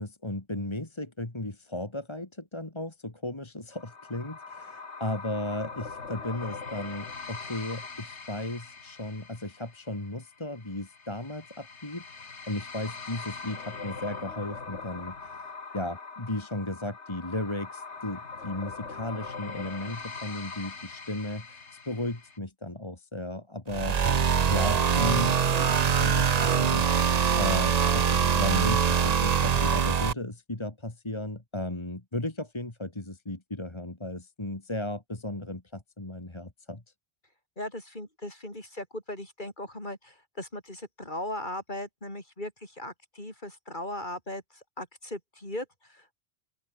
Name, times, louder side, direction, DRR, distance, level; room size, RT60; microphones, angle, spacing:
voice 1, 0.0-15.5 15.7-27.1 27.4-36.8, left 1 dB, 25° left, 2.4 m, -35 dB
sound 1, 3.7-22.4, left 4 dB, 90° left, 2.5 m, -42 dB
sound 2, 23.7-30.1, right 7 dB, 40° right, 0.7 m, -23 dB
voice 2, 37.6-46.2, left 1 dB, 45° left, 6.5 m, -38 dB
open air
omnidirectional pair, 1.1 m